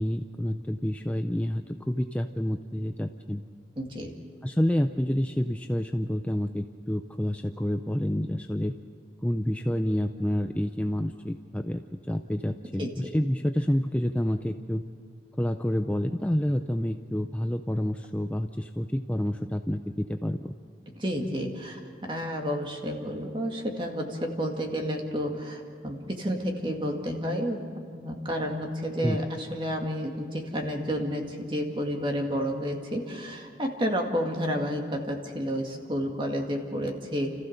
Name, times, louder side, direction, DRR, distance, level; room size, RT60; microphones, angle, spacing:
voice 1, 0.0-3.4 4.4-8.7 9.2-14.8 15.4-20.5 29.0-29.2, equal, 10° left, 6 dB, 0.4 m, -28 dB
voice 2, 3.8-4.2 12.8-12.9 20.9-27.6 27.9-37.3, equal, 30° right, 2 dB, 2.1 m, -30 dB
30.0 x 14.5 x 6.6 m, 2.4 s
head